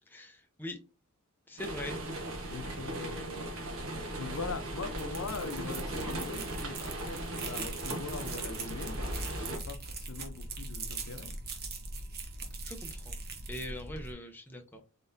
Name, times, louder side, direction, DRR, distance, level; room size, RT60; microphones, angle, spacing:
voice 1, 0.1-0.8 1.5-2.0 12.6-13.2 13.5-14.8, left 1 dB, 10° left, 0.6 m, -42 dB
sound 1, 1.6-9.6, right 1 dB, 65° right, 1.3 m, -38 dB
voice 2, 2.5-3.5 4.2-11.4, left 4 dB, 65° left, 0.7 m, -42 dB
sound 2, 4.8-14.1, right 2 dB, 45° right, 1.0 m, -40 dB
4.0 x 4.0 x 2.6 m
head